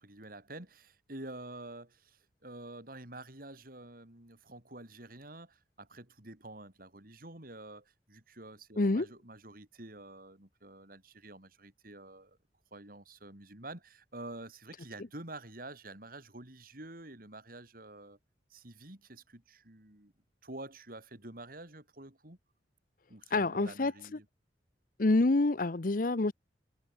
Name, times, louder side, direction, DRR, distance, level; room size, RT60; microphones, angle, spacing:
voice 1, 0.0-12.4 12.7-18.2 18.5-20.1 20.4-22.4 23.1-24.3, right 2 dB, 50° right, 4.2 m, -48 dB
voice 2, 8.8-9.1 23.3-24.2 25.0-26.3, left 2 dB, 50° left, 0.8 m, -27 dB
head